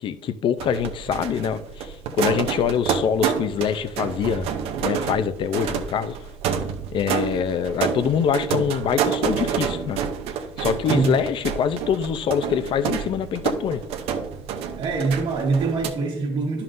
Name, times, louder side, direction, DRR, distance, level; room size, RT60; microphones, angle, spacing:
voice 1, 0.0-4.5 4.8-6.2 6.9-10.0 10.6-13.8, left 8 dB, 60° left, 13 dB, 0.6 m, -24 dB
sound 1, 0.6-15.9, right 7 dB, 85° right, 0.8 m, -28 dB
voice 2, 14.8-16.6, right 4 dB, 55° right, -2 dB, 1.7 m, -24 dB
11.0 x 5.6 x 2.6 m, 0.79 s
cardioid pair, 105°, 10 cm